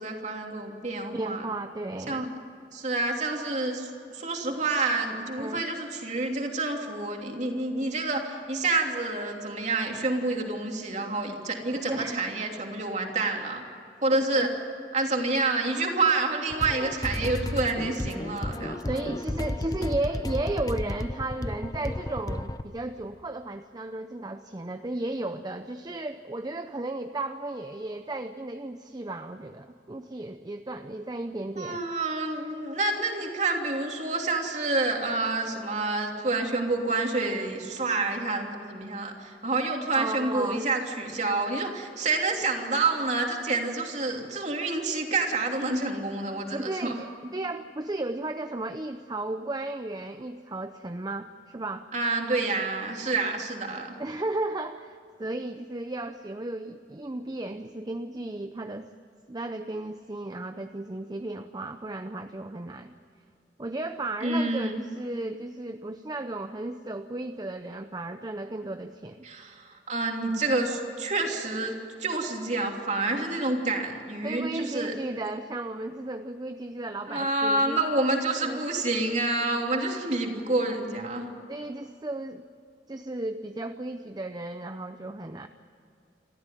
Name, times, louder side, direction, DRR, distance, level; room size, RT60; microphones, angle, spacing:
voice 1, 0.0-1.5 2.1-2.3 2.7-13.6 14.0-14.5 14.9-19.0 31.5-46.9 51.9-53.9 64.2-64.8 69.2-71.7 72.0-74.9 77.1-81.3, right 2 dB, 40° right, 2 dB, 3.1 m, -28 dB
voice 2, 1.1-2.3 5.4-5.7 11.7-12.3 14.4-14.5 18.9-31.8 39.9-40.6 46.5-51.9 54.0-58.9 59.3-62.9 63.6-69.3 74.2-77.8 78.4-78.7 81.5-82.5 82.9-85.5, right 2 dB, 25° right, 8 dB, 0.6 m, -34 dB
sound 1, 16.5-22.6, left 1 dB, 20° left, 0.7 m, -33 dB
28.5 x 13.5 x 9.2 m, 2.6 s
head